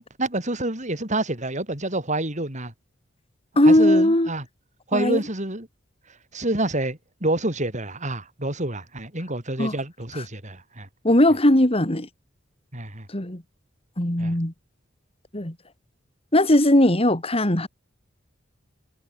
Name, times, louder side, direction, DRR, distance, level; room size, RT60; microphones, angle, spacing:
voice 1, 0.0-2.7 3.6-4.4 4.9-5.7 6.3-10.9 12.7-13.1 14.2-14.3, right 2 dB, 40° right, 7.7 m, -28 dB
voice 2, 3.6-4.3 4.9-5.2 9.6-9.7 10.1-10.2 11.0-12.1 13.1-13.4 14.0-14.5 15.3-15.5 16.3-17.7, left 1 dB, 30° left, 2.8 m, -19 dB
head